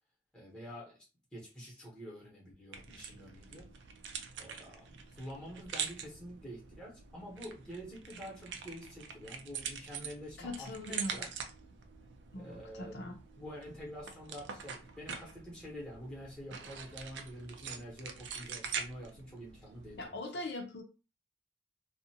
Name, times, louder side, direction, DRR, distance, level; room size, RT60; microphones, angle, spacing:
voice 1, 0.3-1.0 1.3-3.7 4.4-11.3 12.3-20.2, equal, 5° left, -4 dB, 0.9 m, -47 dB
sound 1, 2.7-20.1, right 6 dB, 85° right, 0.4 m, -45 dB
voice 2, 10.4-11.2 12.3-13.2 20.0-20.8, left 1 dB, 75° left, 3 dB, 0.5 m, -41 dB
2.4 x 2.1 x 2.7 m, 0.30 s
head